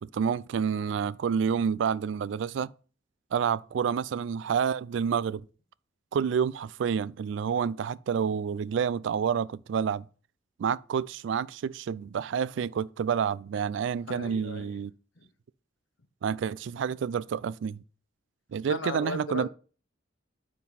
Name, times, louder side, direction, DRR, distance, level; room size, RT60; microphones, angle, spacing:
voice 1, 0.0-2.7 3.3-5.4 6.1-10.0 10.6-14.9 16.2-17.8 18.5-19.5, right 7 dB, 70° right, 0.3 m, -29 dB
voice 2, 14.1-14.7 18.7-19.5, left 3 dB, 85° left, 0.9 m, -36 dB
9.2 x 3.8 x 4.1 m
head